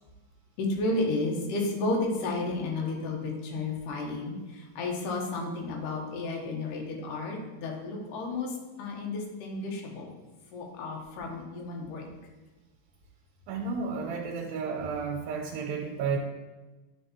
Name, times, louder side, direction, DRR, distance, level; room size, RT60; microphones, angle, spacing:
voice 1, 0.6-10.1 10.5-12.1, left 2 dB, 75° left, 0 dB, 2.4 m, -32 dB
voice 2, 13.5-16.2, right 5 dB, 85° right, 0 dB, 2.4 m, -32 dB
9.3 x 4.4 x 2.9 m, 1.2 s
omnidirectional pair, 4.1 m